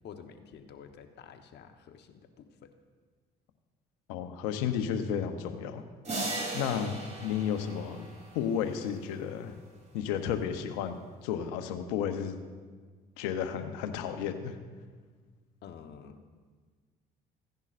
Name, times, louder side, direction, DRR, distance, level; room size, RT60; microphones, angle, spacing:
voice 1, 0.0-2.7 6.3-6.4 15.6-16.2, left 7 dB, 60° left, 6 dB, 1.0 m, -50 dB
voice 2, 4.1-5.8 6.5-7.0 7.2-8.1 8.3-9.5 9.9-11.0 11.2-12.4 13.2-14.6, left 8 dB, 90° left, 8 dB, 0.8 m, -32 dB
sound 1, 6.0-8.8, right 2 dB, 35° right, 3.2 m, -37 dB
15.5 x 10.5 x 2.5 m, 1.5 s
supercardioid pair, 70°, 19 cm